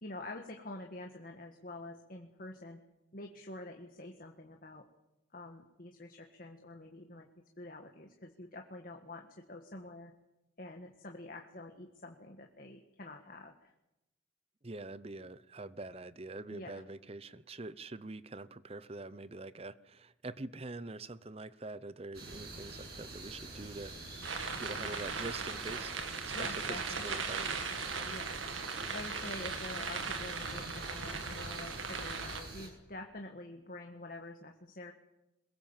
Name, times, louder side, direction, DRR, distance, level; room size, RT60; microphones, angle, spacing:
voice 1, 0.0-2.8 3.1-4.8 5.3-7.3 7.6-10.1 10.6-13.7 16.5-16.7 24.8-25.0 26.3-27.3 28.1-28.3 28.9-34.9, left 2 dB, 45° left, 3 dB, 1.7 m, -47 dB
voice 2, 14.6-23.9 24.5-26.0 26.2-27.8, right 2 dB, 30° right, 16 dB, 0.8 m, -45 dB
sound 1, 22.1-32.7, right 2 dB, 55° right, 6.8 m, -47 dB
sound 2, 24.2-32.4, right 5 dB, 85° right, 2.5 m, -38 dB
22.5 x 21.5 x 7.4 m, 0.94 s
head